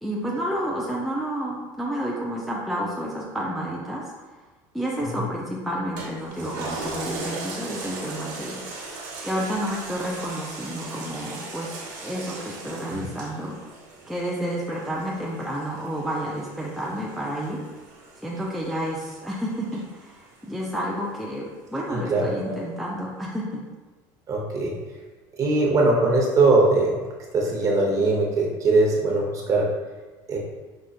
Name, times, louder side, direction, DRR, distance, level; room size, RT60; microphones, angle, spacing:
voice 1, 0.0-4.0 4.7-8.6 9.2-11.7 12.0-13.6 14.1-17.6 18.2-23.6, equal, ahead, -4 dB, 0.4 m, -30 dB
Toilet flush, 6.0-20.8 21.3-21.4, right 2 dB, 85° right, 0.9 m, -38 dB
voice 2, 21.9-22.2 24.3-24.7 25.4-27.0 27.3-29.6 30.3-30.4, right 3 dB, 35° right, -1 dB, 0.8 m, -20 dB
5.1 x 2.4 x 2.4 m, 1.2 s
supercardioid pair, 120°, 10 cm